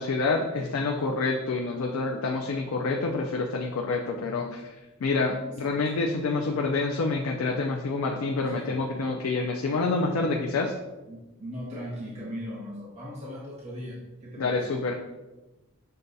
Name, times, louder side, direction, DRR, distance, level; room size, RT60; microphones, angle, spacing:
voice 1, 0.0-4.6 5.0-10.7 14.4-15.0, left 3 dB, 70° left, 2 dB, 0.4 m, -27 dB
voice 2, 5.6-5.9 8.5-8.7 11.1-14.6, equal, 30° right, -7 dB, 0.8 m, -39 dB
6.5 x 2.3 x 2.6 m, 1.1 s
head